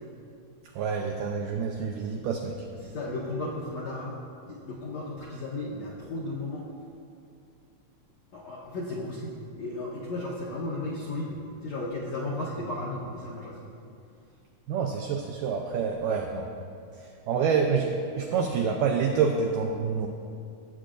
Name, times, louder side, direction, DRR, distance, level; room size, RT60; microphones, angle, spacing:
voice 1, 0.7-2.7 14.7-16.5 16.9-20.1, right 6 dB, 85° right, 2 dB, 1.9 m, -27 dB
voice 2, 2.8-4.2 4.5-6.7 8.3-13.6, left 2 dB, 70° left, -6 dB, 1.6 m, -34 dB
17.0 x 7.9 x 2.5 m, 2.4 s
omnidirectional pair, 4.5 m